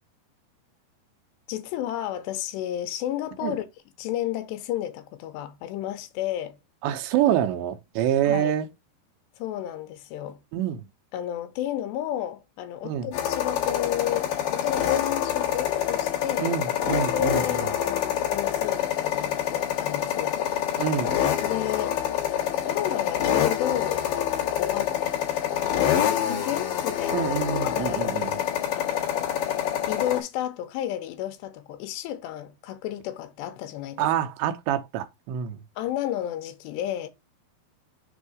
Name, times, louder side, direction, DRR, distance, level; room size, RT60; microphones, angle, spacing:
voice 1, 1.5-3.7 4.0-6.6 8.2-8.5 9.4-10.4 11.1-16.6 17.1-20.4 21.4-22.0 22.6-24.1 24.6-24.9 25.8-27.3 27.6-28.1 28.7-29.5 29.9-34.1 35.8-37.1, left 12 dB, 85° left, 3.0 m, -32 dB
voice 2, 6.8-8.7 10.5-10.9 12.8-13.1 16.4-17.7 20.8-21.2 27.1-28.4 34.0-35.6, right 10 dB, 90° right, 3.1 m, -26 dB
sound 1, 13.1-30.2, left 10 dB, 55° left, 3.0 m, -26 dB
7.2 x 2.7 x 4.8 m
omnidirectional pair, 5.0 m